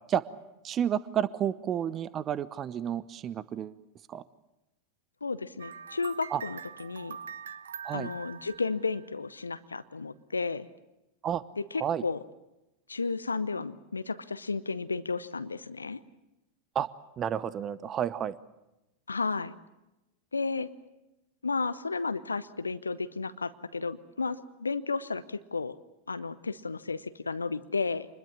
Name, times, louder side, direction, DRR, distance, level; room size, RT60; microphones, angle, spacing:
voice 1, 0.6-3.8 4.1-4.2 6.3-6.4 7.8-8.1 11.2-11.4 11.8-12.0 16.7-16.9 17.2-18.3, right 9 dB, 30° right, 18 dB, 0.8 m, -30 dB
voice 2, 5.2-7.2 7.9-10.7 11.6-12.2 12.9-16.0 19.1-19.5 20.3-20.7 21.4-25.8 26.1-28.1, left 4 dB, 75° left, 14 dB, 0.8 m, -33 dB
sound 1, 5.6-9.4, right 7 dB, 65° right, 0.9 m, -44 dB
27.0 x 21.5 x 7.3 m, 0.96 s
figure-of-eight pair, 90°, 0 cm